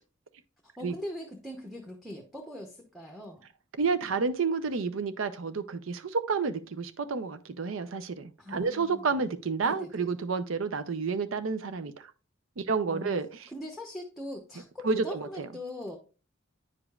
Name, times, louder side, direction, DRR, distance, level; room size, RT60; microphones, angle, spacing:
voice 1, 0.6-3.5 8.4-9.2 9.6-10.1 12.9-13.1 13.5-16.0, left 1 dB, ahead, 0.8 m, -41 dB
voice 2, 3.8-11.9 12.6-13.3 14.8-15.5, right 4 dB, 85° right, 0.6 m, -30 dB
9.5 x 5.0 x 2.4 m
head